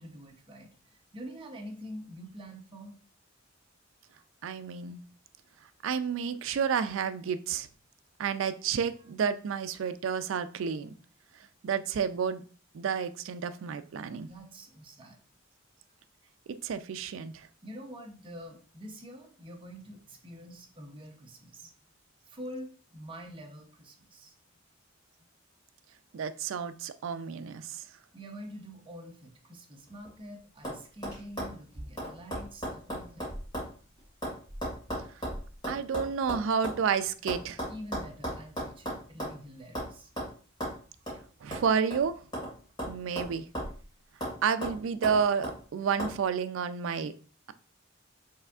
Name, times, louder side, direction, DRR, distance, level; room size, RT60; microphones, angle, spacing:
voice 1, 0.0-3.0 14.3-15.2 17.6-21.8 22.2-24.4 28.1-33.3 37.7-40.1, equal, 25° right, 2 dB, 0.7 m, -46 dB
voice 2, 4.4-5.0 5.8-7.7 8.2-10.9 11.6-12.4 12.7-14.3 16.6-17.5 26.1-27.8 35.7-37.6 41.4-42.2 42.9-43.5 44.4-47.1, right 6 dB, 70° right, 11 dB, 0.3 m, -30 dB
sound 1, 29.9-30.3 30.6-30.8 31.0-33.7 34.0-36.8 37.3-39.4 39.8-39.9 40.2-40.3 40.6-40.8 41.1-41.2 41.5-42.5 42.8-43.8 44.2-44.4 44.6-45.6 46.0-46.1, equal, 20° left, 2.2 m, -36 dB
5.5 x 3.5 x 2.4 m, 0.40 s
head